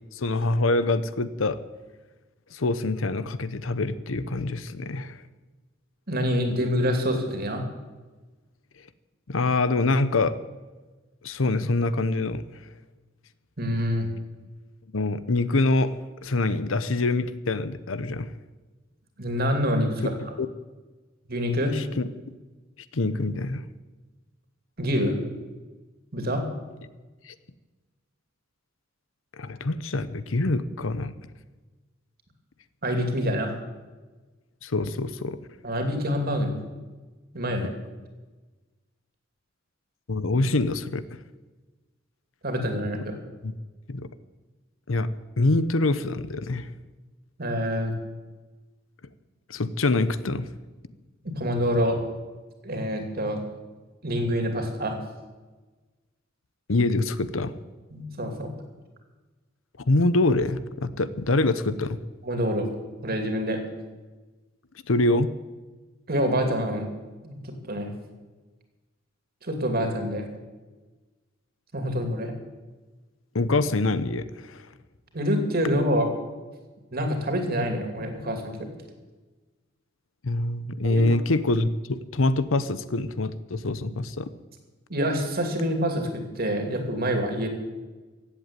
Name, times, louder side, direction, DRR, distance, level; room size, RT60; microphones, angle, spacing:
voice 1, 0.1-1.6 2.5-5.2 9.3-10.4 11.2-12.4 14.9-16.0 16.2-18.3 20.4-20.5 21.7-22.0 22.9-23.7 27.2-27.3 29.4-31.1 34.6-35.4 40.1-41.0 43.4-43.5 43.9-44.1 44.9-45.1 45.4-46.7 49.5-50.5 56.7-57.5 59.9-62.0 64.9-65.3 73.3-74.7 80.2-84.3, left 2 dB, 90° left, 14 dB, 0.8 m, -25 dB
voice 2, 6.1-7.6 13.6-14.1 19.2-20.1 21.3-21.7 24.8-25.1 26.1-26.4 32.8-33.5 35.6-36.6 37.3-37.7 42.4-43.2 47.4-47.9 51.2-52.0 52.6-53.4 54.0-55.0 57.9-58.5 62.2-62.7 63.0-63.6 66.1-66.9 67.2-67.4 67.7-67.9 69.4-70.2 71.7-72.3 75.1-76.1 76.9-78.7 80.8-81.0 84.9-87.5, equal, 50° right, 4 dB, 2.7 m, -26 dB
16.0 x 8.2 x 9.0 m, 1.3 s
head